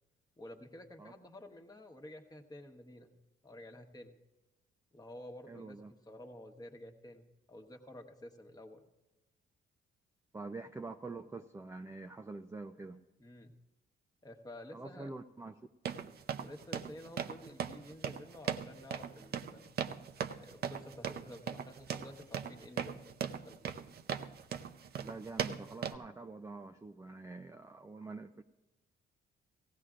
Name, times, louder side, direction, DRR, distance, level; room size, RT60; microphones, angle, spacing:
voice 1, 0.4-3.1 3.4-4.1 4.9-8.8 13.2-13.5 14.2-15.1 16.4-19.7 20.4-23.6, left 1 dB, 20° left, 3 dB, 1.2 m, -51 dB
voice 2, 5.5-5.9 10.3-13.0 14.7-15.6 25.0-28.4, right 3 dB, 15° right, 5 dB, 0.4 m, -46 dB
sound 1, 15.8-26.0, right 8 dB, 55° right, 0.6 m, -39 dB
18.0 x 16.0 x 2.5 m, 1.0 s
cardioid pair, 90°, 20 cm